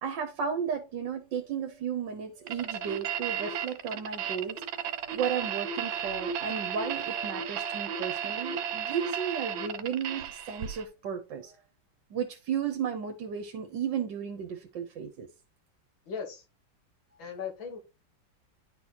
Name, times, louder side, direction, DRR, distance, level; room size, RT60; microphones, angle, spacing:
voice 1, 0.0-4.6 5.1-11.6 12.1-15.3, right 7 dB, 70° right, 1.6 m, -34 dB
sound 1, 1.3-10.5, left 5 dB, 65° left, 3.0 m, -54 dB
sound 2, 2.5-10.9, right 8 dB, 85° right, 1.6 m, -34 dB
voice 2, 16.1-16.4 17.2-17.8, left 6 dB, 80° left, 2.2 m, -37 dB
11.0 x 4.1 x 2.9 m
omnidirectional pair, 2.1 m